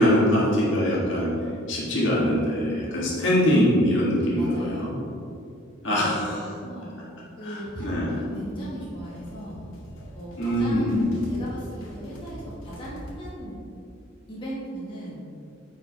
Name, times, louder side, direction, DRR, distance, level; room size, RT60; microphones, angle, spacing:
voice 1, 0.0-1.3 1.7-4.9 5.8-6.4 7.4-8.2 10.3-11.3, equal, 60° left, -6 dB, 1.7 m, -23 dB
voice 2, 4.3-4.9 5.9-7.0 7.4-9.6 10.1-11.0 11.3-13.6 14.3-15.2, equal, 25° left, -8 dB, 1.6 m, -37 dB
sound 1, 7.7-13.3, equal, 75° left, 1.3 m, -43 dB
9.3 x 4.7 x 3.4 m, 2.6 s
head